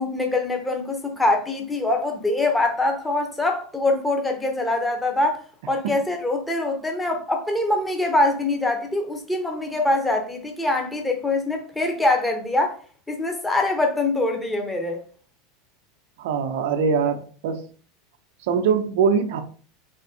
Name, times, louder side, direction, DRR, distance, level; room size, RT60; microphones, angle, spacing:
voice 1, 0.0-5.4 5.7-12.7 13.1-15.0, left 2 dB, 10° left, 0.8 m, -23 dB
voice 2, 16.2-17.6 18.4-19.4, right 6 dB, 60° right, 0.6 m, -22 dB
4.0 x 3.6 x 2.6 m
figure-of-eight pair, 80°, 0 cm